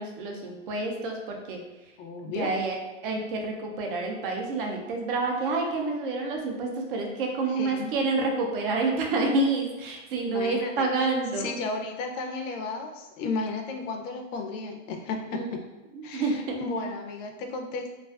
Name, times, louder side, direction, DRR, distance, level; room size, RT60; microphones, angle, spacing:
voice 1, 0.0-1.6 2.2-2.8 3.0-11.6 15.3-15.5 15.9-16.6, right 3 dB, 45° right, 2 dB, 0.4 m, -28 dB
voice 2, 2.0-2.5 7.5-7.9 10.2-10.9 11.3-15.6 16.0-17.9, left 3 dB, 80° left, 4 dB, 0.5 m, -34 dB
2.4 x 2.3 x 2.3 m, 1.1 s
supercardioid pair, 170°, 37 cm